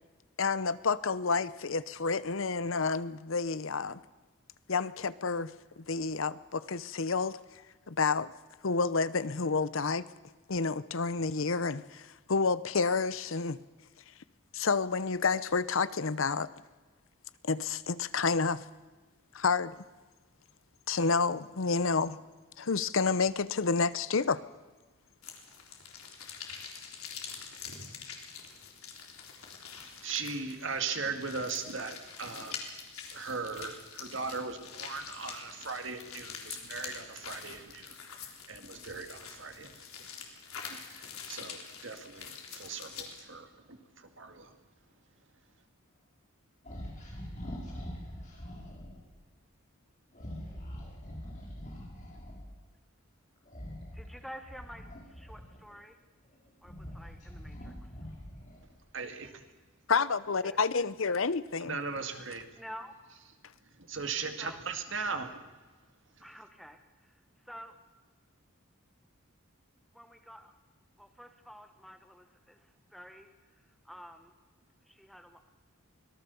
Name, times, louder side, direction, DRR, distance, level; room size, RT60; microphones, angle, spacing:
voice 1, 0.4-4.0 4.7-7.4 7.9-8.3 8.6-10.1 10.5-13.6 14.5-16.5 17.4-18.6 19.3-19.8 20.9-22.2 22.6-24.4 59.9-61.8, left 4 dB, 65° left, 0.8 m, -29 dB
sound 1, 25.2-43.2, left 6 dB, 85° left, 3.6 m, -45 dB
voice 2, 29.8-32.6 33.1-39.8 40.7-44.5 58.9-59.4 61.6-62.5 63.8-65.4 66.2-66.3, right 4 dB, 60° right, 2.2 m, -38 dB
sound 2, 46.6-49.0 50.1-52.5 53.5-55.8 56.3-58.7, equal, 35° left, 5.9 m, -44 dB
voice 3, 53.9-56.0 56.6-57.9 60.4-60.6 62.6-62.9 64.4-64.6 66.2-67.8 69.9-70.5 71.0-73.3 73.6-74.3 74.8-75.5, equal, ahead, 1.2 m, -50 dB
24.5 x 18.0 x 7.0 m
head